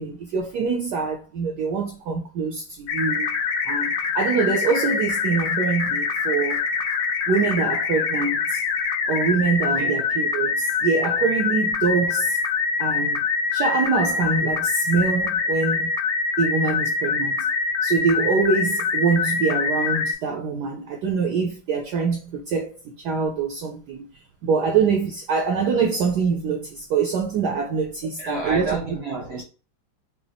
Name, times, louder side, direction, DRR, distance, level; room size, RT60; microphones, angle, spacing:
voice 1, 0.0-3.3 3.7-6.6 7.3-8.6 9.1-12.4 12.8-13.2 13.5-15.9 16.4-17.5 17.8-24.1 24.4-28.8, right 5 dB, 75° right, 0.9 m, -24 dB
sound 1, 2.9-20.1, left 5 dB, 70° left, 1.0 m, -24 dB
voice 2, 28.2-29.4, right 3 dB, 55° right, 0.7 m, -29 dB
4.8 x 2.1 x 3.3 m
omnidirectional pair, 2.3 m